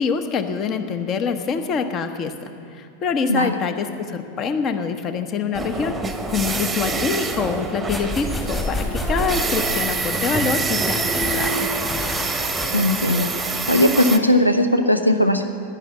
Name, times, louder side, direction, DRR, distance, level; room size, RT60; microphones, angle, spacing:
voice 1, 0.0-6.0 6.3-11.7, left 5 dB, 30° left, 8 dB, 1.0 m, -25 dB
sound 1, 5.5-14.2, right 3 dB, 10° right, 1.0 m, -26 dB
sound 2, 6.3-12.7, left 2 dB, 15° left, 1.9 m, -31 dB
voice 2, 12.7-13.3 13.7-15.4, left 1 dB, 85° left, 7 dB, 0.6 m, -18 dB
11.0 x 11.0 x 8.2 m, 2.8 s
figure-of-eight pair, 90°, 0 cm